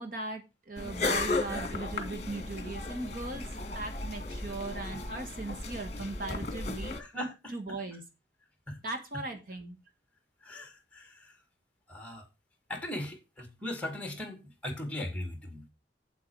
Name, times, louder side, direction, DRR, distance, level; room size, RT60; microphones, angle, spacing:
voice 1, 0.0-7.0 7.5-8.0 8.8-9.8, right 2 dB, 50° right, 1.6 m, -39 dB
sound 1, 0.8-7.0, left 3 dB, 35° left, 2.0 m, -35 dB
voice 2, 6.9-7.8 8.7-8.8 10.4-11.0 11.9-12.2 12.7-15.6, left 1 dB, 5° left, 2.2 m, -38 dB
8.3 x 8.1 x 4.7 m
head